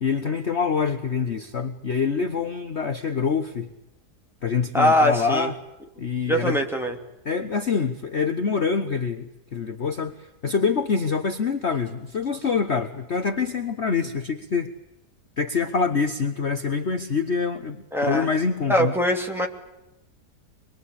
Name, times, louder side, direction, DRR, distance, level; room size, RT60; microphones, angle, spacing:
voice 1, 0.0-3.7 4.4-5.5 6.0-6.6 7.2-14.7 15.4-18.9, left 5 dB, 45° left, 7 dB, 1.3 m, -25 dB
voice 2, 4.7-5.5 6.3-7.0 17.9-18.3 18.7-19.5, equal, ahead, 1 dB, 2.9 m, -22 dB
25.5 x 21.5 x 8.6 m, 0.92 s
omnidirectional pair, 1.8 m